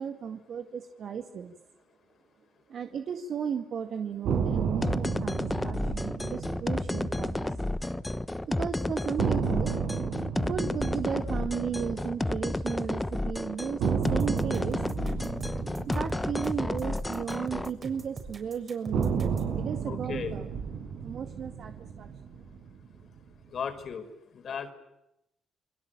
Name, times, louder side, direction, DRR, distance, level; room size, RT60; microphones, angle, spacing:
voice 1, 0.0-1.6 2.7-7.6 8.5-9.8 10.4-14.8 15.9-20.5 21.0-22.1, right 7 dB, 65° right, 6 dB, 2.1 m, -35 dB
sound 1, 4.2-8.3 8.6-8.7 9.2-13.3 13.8-18.2 18.9-23.3, right 6 dB, 85° right, 5.2 m, -33 dB
sound 2, 4.8-17.7, left 1 dB, 15° left, 1.2 m, -31 dB
sound 3, 14.0-19.5, right 4 dB, 40° right, 6.6 m, -42 dB
voice 2, 19.9-20.4 23.5-24.0 24.4-24.7, left 7 dB, 60° left, 9 dB, 4.8 m, -35 dB
29.5 x 22.0 x 9.0 m, 0.87 s
cardioid pair, 75°, 0 cm